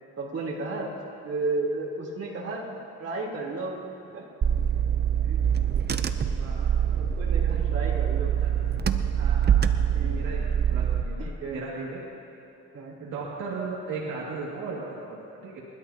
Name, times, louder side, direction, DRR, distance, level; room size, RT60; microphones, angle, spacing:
voice 1, 0.2-0.9 1.2-2.6 3.0-3.7 4.1-4.2 5.2-5.4 6.7-8.3 9.9-10.3 10.8-10.9 11.2-11.6 12.7-13.0, right 3 dB, 55° right, -4 dB, 3.6 m, -33 dB
Car / Engine, 4.4-11.0, right 9 dB, 35° right, 0.7 m, -24 dB
voice 2, 6.3-6.7 8.2-8.5 9.2-9.6 9.9-10.4 10.7-12.0 12.8-15.6, right 4 dB, 85° right, -5 dB, 2.4 m, -37 dB
26.0 x 12.5 x 2.9 m, 2.7 s
cardioid pair, 90°, 30 cm